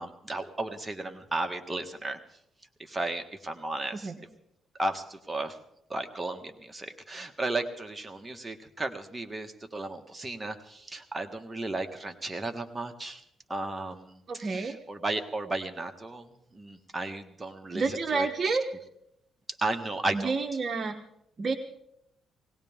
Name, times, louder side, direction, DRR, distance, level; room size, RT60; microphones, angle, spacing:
voice 1, 0.0-2.2 2.8-4.1 4.8-5.6 5.9-13.2 13.5-18.6 19.6-20.3, right 2 dB, 20° right, 5 dB, 1.6 m, -34 dB
voice 2, 14.3-14.8 17.7-18.6 20.1-20.9 21.4-21.5, right 4 dB, 45° right, 6 dB, 1.0 m, -29 dB
19.5 x 17.5 x 3.7 m, 0.77 s
cardioid pair, 90°, 0 cm